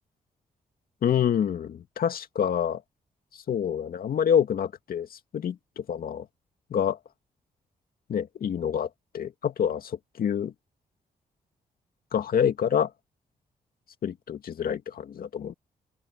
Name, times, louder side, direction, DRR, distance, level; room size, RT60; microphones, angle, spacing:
voice 1, 1.0-2.8 3.3-6.3 6.7-7.0 8.1-10.5 12.1-12.9 14.0-15.5, left 8 dB, 70° left, 2.2 m, -27 dB
open air
cardioid pair, 65°, 16 cm